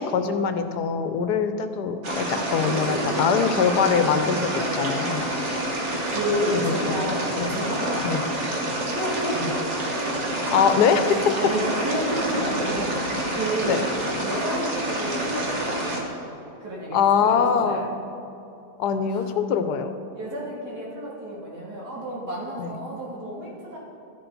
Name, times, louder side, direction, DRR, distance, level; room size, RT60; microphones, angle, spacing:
voice 1, 0.0-5.2 6.6-7.0 7.4-7.6 8.0-8.2 9.4-9.5 10.5-11.3 13.6-13.8 16.9-17.9 18.8-19.9 22.6-22.7, left 6 dB, 80° left, 9 dB, 1.3 m, -23 dB
sound 1, 2.0-16.0, right 1 dB, 45° right, 1.7 m, -28 dB
voice 2, 2.6-3.3 6.1-8.6 8.9-9.5 11.3-13.8 14.2-16.0 16.6-17.8 19.0-19.2 20.1-23.8, equal, 80° right, -6 dB, 3.4 m, -31 dB
12.5 x 10.5 x 4.0 m, 2.8 s
omnidirectional pair, 1.8 m